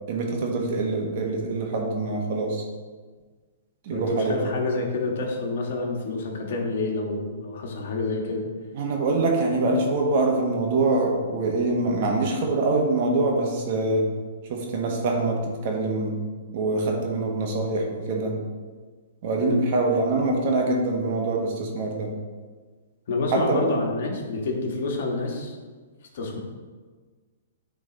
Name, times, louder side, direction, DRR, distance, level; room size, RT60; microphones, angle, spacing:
voice 1, 0.1-2.7 3.8-4.5 8.7-14.1 14.5-16.2 16.5-18.4 19.2-22.1 23.3-23.6, right 2 dB, 50° right, 1 dB, 1.5 m, -24 dB
voice 2, 3.9-8.5 19.4-19.6 23.1-25.5 26.1-26.4, left 3 dB, 65° left, 1 dB, 1.5 m, -28 dB
8.9 x 3.8 x 4.0 m, 1.5 s
hypercardioid pair, 135°, 0 cm